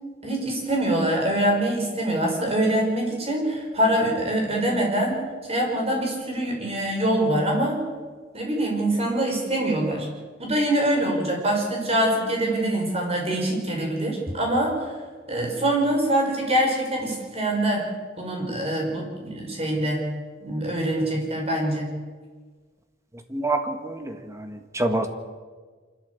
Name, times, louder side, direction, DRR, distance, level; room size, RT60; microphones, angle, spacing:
voice 1, 0.2-5.2 5.5-7.8 8.3-10.1 10.4-14.9 15.3-20.0 20.4-21.9, right 1 dB, 30° right, 0 dB, 5.5 m, -24 dB
voice 2, 23.3-25.1, right 2 dB, 15° right, 7 dB, 1.7 m, -27 dB
26.0 x 12.5 x 8.3 m, 1.5 s
head